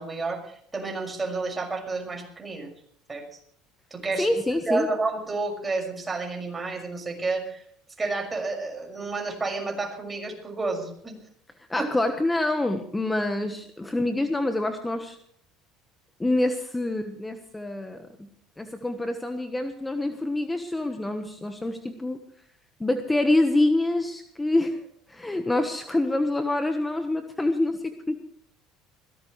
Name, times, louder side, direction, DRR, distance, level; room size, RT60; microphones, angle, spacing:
voice 1, 0.0-2.7 3.1-3.4 3.9-4.3 4.7-7.6 8.0-11.2 11.8-11.9, right 3 dB, 20° right, 3 dB, 6.1 m, -30 dB
voice 2, 4.2-4.9 11.7-15.2 16.2-18.3 18.6-22.2 22.8-28.2, left 2 dB, 10° left, 7 dB, 1.3 m, -26 dB
21.5 x 17.0 x 3.3 m, 0.65 s
supercardioid pair, 80°, 0 cm